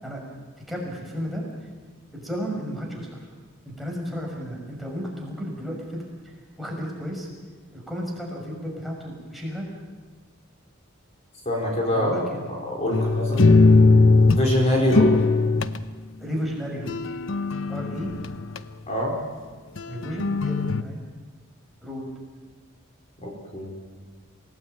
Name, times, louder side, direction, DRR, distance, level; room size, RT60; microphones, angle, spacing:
voice 1, 0.7-1.4 2.1-3.1 3.7-6.0 6.6-7.3 7.7-9.6 11.9-12.5 12.9-13.0 16.2-16.9 17.7-18.1 19.9-21.0 21.8-22.1, equal, ahead, -2 dB, 5.9 m, -33 dB
voice 2, 11.4-12.1 12.5-13.5 14.3-15.1 18.9-19.1 23.2-23.7, left 1 dB, 35° left, -1 dB, 4.8 m, -24 dB
sound 1, 12.9-14.5 14.9-15.8 16.9-18.6 19.8-20.8, left 3 dB, 65° left, 0.9 m, -19 dB
27.5 x 18.5 x 9.1 m, 1.4 s
head